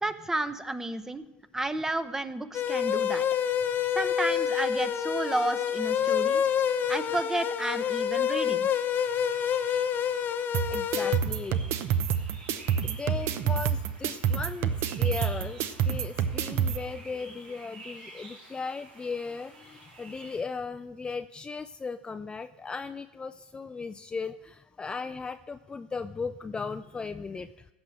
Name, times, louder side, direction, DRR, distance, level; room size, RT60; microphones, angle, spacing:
voice 1, 0.0-1.2 1.5-3.2 3.9-6.4 6.9-8.7, right 2 dB, 10° right, 13 dB, 0.7 m, -31 dB
sound 1, 2.5-11.2, left 8 dB, 40° left, 0.9 m, -27 dB
sound 2, 8.9-20.4, right 2 dB, 85° right, 4.8 m, -51 dB
sound 3, 10.5-16.8, right 8 dB, 50° right, 0.8 m, -28 dB
voice 2, 10.7-12.0 12.8-27.7, left 4 dB, 15° left, 9 dB, 0.4 m, -37 dB
15.5 x 6.2 x 6.4 m, 1.0 s
hypercardioid pair, 95°, 5 cm